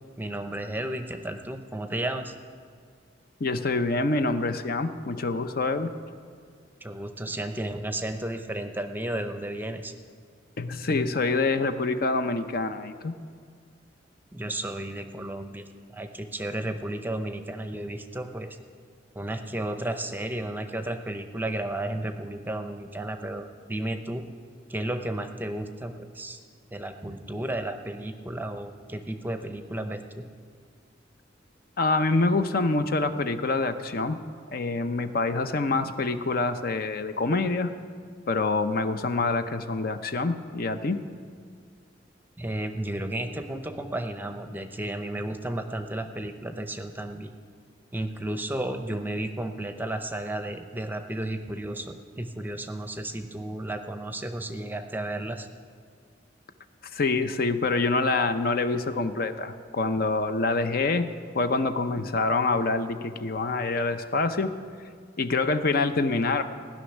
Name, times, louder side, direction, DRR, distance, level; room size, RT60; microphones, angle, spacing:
voice 1, 0.2-2.3 6.8-9.9 14.3-15.6 15.9-18.6 19.1-24.3 24.7-26.4 26.7-30.2 42.4-47.3 47.9-55.5, right 1 dB, 10° right, 8 dB, 0.7 m, -33 dB
voice 2, 3.4-5.9 10.6-13.1 31.8-34.2 34.5-37.7 38.3-41.0 56.9-61.1 61.3-64.5 65.2-66.4, left 3 dB, 50° left, 9 dB, 0.7 m, -26 dB
16.5 x 6.3 x 10.0 m, 2.2 s
head